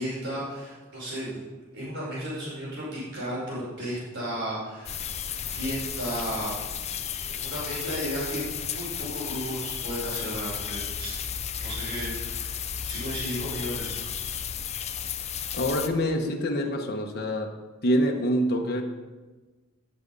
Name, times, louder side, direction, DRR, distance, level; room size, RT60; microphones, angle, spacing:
voice 1, 0.0-1.4 1.7-5.0 5.5-6.5 7.3-11.1 11.6-12.6 12.9-14.0, equal, 55° right, -7 dB, 5.0 m, -34 dB
sound 1, 4.9-15.9, left 8 dB, 30° left, 0.6 m, -33 dB
voice 2, 15.5-17.5 17.8-18.8, equal, 50° left, 1 dB, 1.2 m, -25 dB
17.0 x 6.8 x 5.4 m, 1.3 s
head